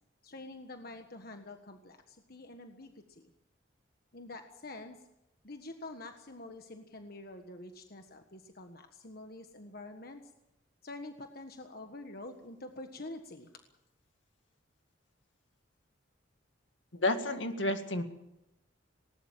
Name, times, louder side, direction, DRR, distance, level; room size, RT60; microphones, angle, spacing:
voice 1, 0.2-3.3 4.1-5.0 5.4-10.2 10.8-13.5, left 2 dB, 50° left, 5 dB, 1.5 m, -47 dB
voice 2, 16.9-18.0, left 2 dB, 70° left, 7 dB, 2.1 m, -30 dB
19.5 x 19.0 x 7.5 m, 0.88 s
head